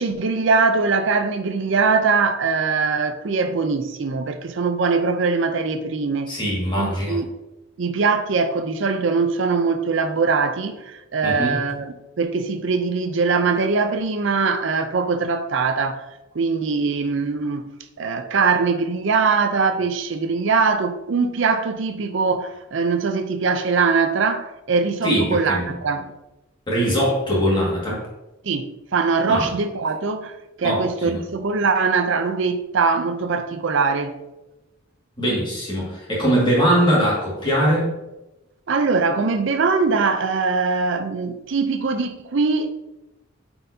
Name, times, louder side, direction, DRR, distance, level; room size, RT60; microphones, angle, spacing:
voice 1, 0.0-6.3 6.8-7.3 7.8-16.1 16.3-17.7 18.0-26.1 28.4-34.2 38.7-42.7, right 4 dB, 60° right, 0.5 m, -22 dB
voice 2, 6.3-7.2 11.2-11.6 25.0-25.7 26.7-28.0 29.3-29.4 30.6-31.2 35.2-37.9, equal, 20° left, 1.8 m, -21 dB
8.9 x 4.4 x 2.7 m
head